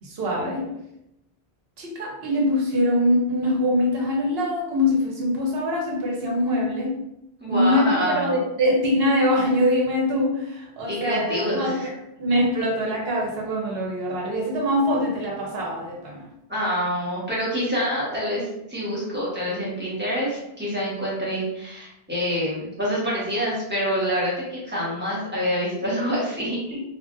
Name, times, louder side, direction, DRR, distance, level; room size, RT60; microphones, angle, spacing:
voice 1, 0.0-0.7 1.8-7.0 7.5-11.9 12.2-16.3 26.7-26.8, left 1 dB, 75° right, -1 dB, 1.0 m, -23 dB
voice 2, 7.4-8.4 10.9-11.9 16.5-26.8, equal, 10° right, -8 dB, 1.1 m, -26 dB
3.2 x 2.4 x 2.5 m, 0.84 s
omnidirectional pair, 1.0 m